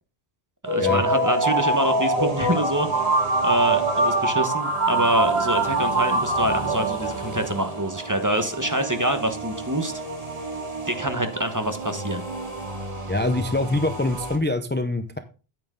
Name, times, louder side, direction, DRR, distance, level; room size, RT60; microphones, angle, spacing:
voice 1, 0.6-2.9 3.4-9.9 10.8-12.2, right 1 dB, 20° right, 7 dB, 1.1 m, -25 dB
sound 1, 0.6-14.4, right 2 dB, 35° right, 2.5 m, -34 dB
sound 2, 0.7-7.5, right 2 dB, 75° right, 2.6 m, -23 dB
voice 2, 13.1-15.2, left 2 dB, 10° left, 8 dB, 0.6 m, -24 dB
9.1 x 8.9 x 3.8 m, 0.34 s
omnidirectional pair, 1.0 m